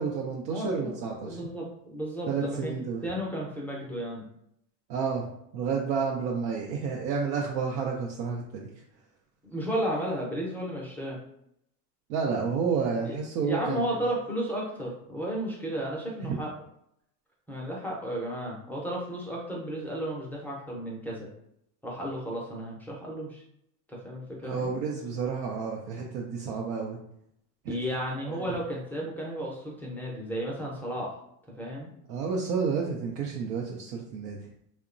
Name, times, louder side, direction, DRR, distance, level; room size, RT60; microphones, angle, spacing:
voice 1, 0.0-1.4 2.3-3.0 4.9-5.2 5.5-8.7 12.1-13.9 16.2-16.4 24.4-27.0 27.6-27.8 28.3-28.4 32.1-34.4, right 5 dB, 80° right, -1 dB, 0.6 m, -30 dB
voice 2, 0.5-0.9 1.2-2.7 3.0-4.2 9.4-11.2 13.0-13.2 13.4-16.5 17.5-21.3 21.8-23.4 23.9-24.7 27.7-31.1 31.6-31.9, equal, 5° left, -5 dB, 0.4 m, -33 dB
2.8 x 2.1 x 2.5 m, 0.74 s
supercardioid pair, 105°, 49 cm